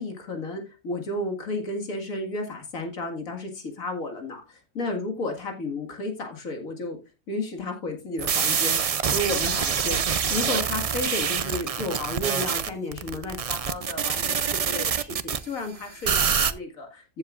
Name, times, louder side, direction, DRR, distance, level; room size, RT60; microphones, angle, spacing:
voice 1, 0.0-7.0 7.3-8.8 9.1-10.0 10.3-17.2, left 2 dB, 80° left, 2 dB, 2.3 m, -32 dB
sound 1, 8.2-15.4 16.0-16.5, right 7 dB, 65° right, 0.3 m, -25 dB
14.5 x 7.5 x 2.5 m, 0.28 s
omnidirectional pair, 1.4 m